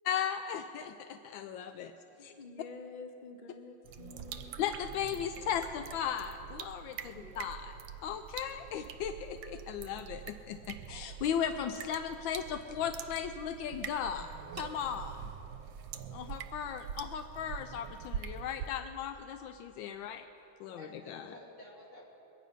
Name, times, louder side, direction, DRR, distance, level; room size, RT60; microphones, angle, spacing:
voice 1, 0.1-1.9 2.2-2.3 4.6-7.8 8.0-15.2 16.1-20.3 20.6-21.3, left 8 dB, 80° left, 8 dB, 1.3 m, -37 dB
voice 2, 2.2-4.6 5.0-5.3 7.0-7.4, left 4 dB, 55° left, 6 dB, 0.5 m, -49 dB
sound 1, 3.8-18.7, right 8 dB, 80° right, 1.3 m, -45 dB
voice 3, 20.4-22.2, left 1 dB, 35° left, -6 dB, 3.6 m, -53 dB
22.5 x 9.3 x 5.4 m, 2.9 s
omnidirectional pair, 2.1 m